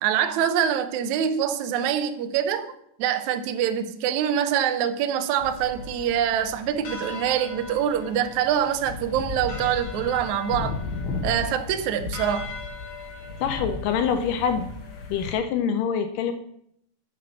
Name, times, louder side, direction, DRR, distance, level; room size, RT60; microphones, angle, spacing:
voice 1, 0.0-2.7 3.0-10.8 11.2-12.5, right 9 dB, 90° right, 8 dB, 1.6 m, -25 dB
sound 1, 5.4-15.3, left 3 dB, 60° left, 2.4 m, -35 dB
voice 2, 13.4-14.7 15.1-16.3, left 7 dB, 80° left, 8 dB, 2.0 m, -25 dB
7.5 x 6.2 x 6.9 m, 0.72 s
omnidirectional pair, 4.4 m